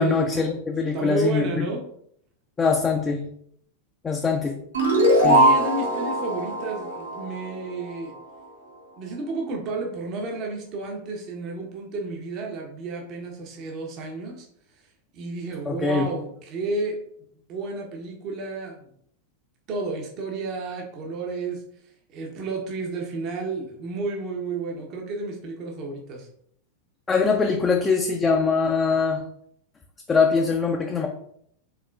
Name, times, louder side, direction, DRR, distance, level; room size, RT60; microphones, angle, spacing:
voice 1, 0.0-1.7 2.6-3.3 4.0-4.6 5.2-5.4 15.7-16.1 27.1-29.2 30.1-31.1, left 4 dB, 15° left, 1 dB, 0.5 m, -22 dB
voice 2, 0.9-1.8 5.1-8.1 9.0-14.5 15.1-17.0 17.5-18.8 19.7-21.6 22.1-26.3, right 3 dB, 35° right, 1 dB, 0.8 m, -31 dB
sound 1, 4.7-8.0, right 1 dB, 70° right, 1.3 m, -21 dB
4.7 x 3.6 x 2.4 m, 0.68 s
figure-of-eight pair, 90°, 0 cm